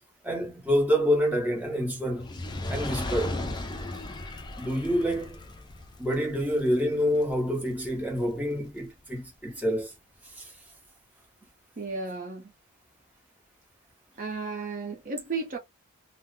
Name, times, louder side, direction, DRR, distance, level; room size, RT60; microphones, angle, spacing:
voice 1, 0.2-2.3 2.7-3.4 4.6-5.4 6.0-9.9 10.3-10.5, equal, 5° right, 1.1 m, -27 dB
Fire, 2.1-8.5 9.2-9.3, left 2 dB, 20° left, 0.5 m, -37 dB
voice 2, 11.8-12.5 14.2-15.6, right 4 dB, 40° right, 0.6 m, -34 dB
2.8 x 2.1 x 3.6 m
head